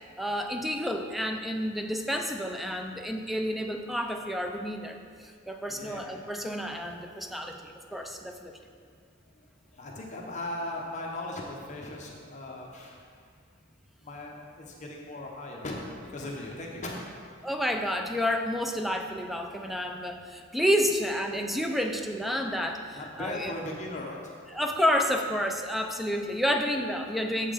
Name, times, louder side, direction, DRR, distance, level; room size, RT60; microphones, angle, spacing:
voice 1, 0.2-8.5 17.4-23.5 24.5-27.5, equal, ahead, 4 dB, 0.4 m, -30 dB
voice 2, 5.7-6.0 9.3-9.5 9.7-13.3 14.0-17.1 22.9-24.2, left 1 dB, 35° left, -1 dB, 0.8 m, -38 dB
7.3 x 5.6 x 5.0 m, 2.1 s
head